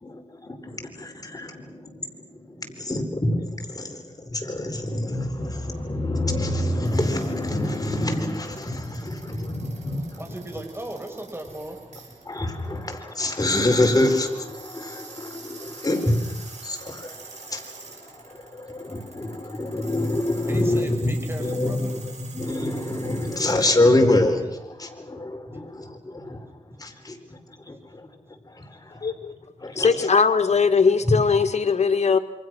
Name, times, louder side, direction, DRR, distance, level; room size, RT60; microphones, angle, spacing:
voice 1, 0.0-10.2 12.3-17.2 17.4-17.6 18.0-26.4 26.8-27.2 27.7-28.1 28.5-29.1 29.6-30.1, left 1 dB, 30° left, 4 dB, 4.5 m, -26 dB
sound 1, 5.2-23.8, right 4 dB, 65° right, 7.0 m, -46 dB
voice 2, 10.2-11.8 20.3-21.9, right 1 dB, 20° right, 4 dB, 6.1 m, -36 dB
voice 3, 29.0-29.3 29.8-32.2, left 5 dB, 65° left, 7 dB, 1.8 m, -20 dB
27.5 x 24.0 x 6.3 m, 0.99 s
cardioid pair, 65°, 12 cm